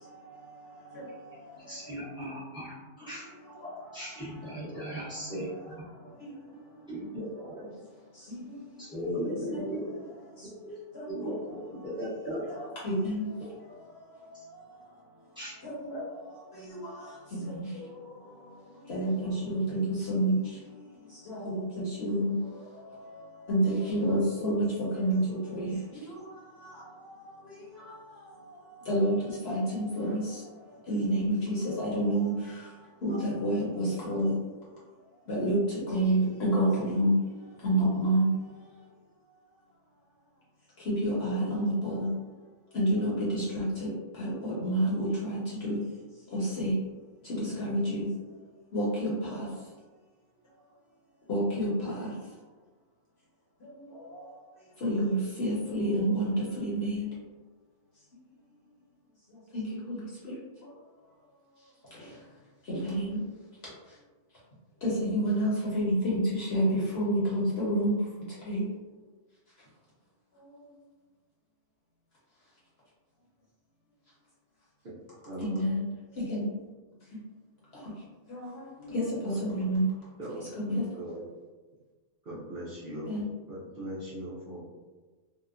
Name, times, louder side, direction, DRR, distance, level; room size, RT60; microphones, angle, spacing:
voice 1, 0.0-2.2 3.0-7.2 7.6-9.1 9.5-12.1 12.5-34.7 35.2-38.9 40.8-42.1 42.7-45.8 46.1-46.8 47.2-48.1 48.7-49.7 51.3-52.3 53.6-57.1 59.3-60.7 61.6-62.3 62.6-63.2 63.8-64.0 64.8-68.7 69.6-69.7 70.3-70.8 75.4-75.8 76.1-76.5 77.0-77.2 77.7-79.9 80.6-80.8 83.1-83.2, right 1 dB, 55° left, -7 dB, 0.8 m, -31 dB
voice 2, 1.7-3.3 3.9-5.7 6.9-7.6 8.8-9.8 10.6-10.7 11.1-12.4 15.4-15.5, equal, 5° right, -9 dB, 0.6 m, -37 dB
voice 3, 75.3-75.7 79.3-79.4 80.2-81.2 82.2-83.2 83.5-84.6, right 1 dB, 55° right, -10 dB, 0.7 m, -40 dB
2.8 x 2.1 x 2.4 m, 1.3 s
omnidirectional pair, 1.5 m